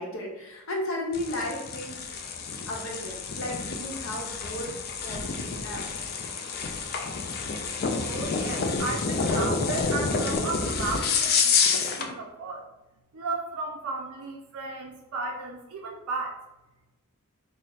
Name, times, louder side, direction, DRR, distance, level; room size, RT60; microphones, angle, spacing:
voice 1, 0.0-2.0 2.7-5.8, left 1 dB, 60° left, -1 dB, 0.8 m, -34 dB
sound 1, 1.1-12.1, left 5 dB, 45° left, 0.4 m, -28 dB
voice 2, 8.0-12.7 13.1-16.4, right 3 dB, 80° right, 0 dB, 0.4 m, -34 dB
3.3 x 2.0 x 3.9 m, 1.0 s
head